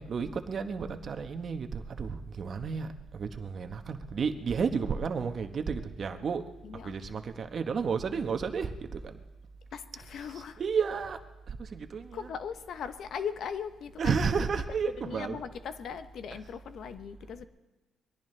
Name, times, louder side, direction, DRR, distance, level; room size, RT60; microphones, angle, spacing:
voice 1, 0.0-6.4 6.8-9.2 10.6-11.2 11.5-12.3 14.0-15.4, right 5 dB, 50° right, 7 dB, 1.1 m, -32 dB
voice 2, 6.6-6.9 9.7-10.6 12.1-14.2 14.9-17.5, left 7 dB, 65° left, 11 dB, 0.8 m, -39 dB
22.5 x 17.5 x 3.3 m, 1.1 s
cardioid pair, 90°, 0 cm